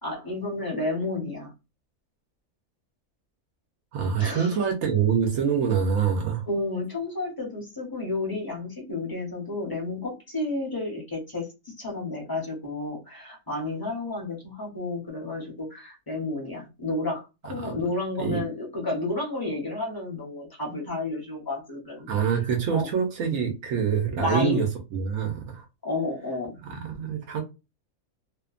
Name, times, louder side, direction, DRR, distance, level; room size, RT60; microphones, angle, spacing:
voice 1, 0.0-1.5 4.2-4.6 6.5-11.5 11.8-22.2 22.7-22.9 24.2-24.6 25.8-26.5, left 2 dB, 20° left, -2 dB, 0.8 m, -31 dB
voice 2, 3.9-6.4 17.6-17.8 18.2-18.4 22.1-25.6 26.6-27.4, right 7 dB, 75° right, 2 dB, 1.0 m, -25 dB
2.8 x 2.1 x 2.4 m, 0.27 s
omnidirectional pair, 1.4 m